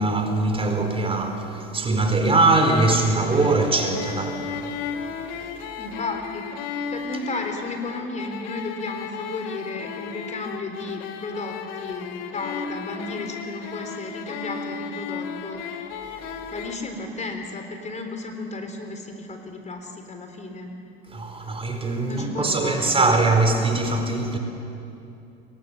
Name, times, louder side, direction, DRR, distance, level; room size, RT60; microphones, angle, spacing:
voice 1, 0.0-4.5 21.1-24.4, right 2 dB, 20° right, 4.1 m, -22 dB
sound 1, 2.6-16.8, left 6 dB, 60° left, 2.4 m, -35 dB
voice 2, 5.8-6.5 6.9-15.6 16.5-20.7 22.1-22.9, left 2 dB, 25° left, 3.8 m, -33 dB
29.5 x 24.0 x 7.0 m
hypercardioid pair, 85°, 30 cm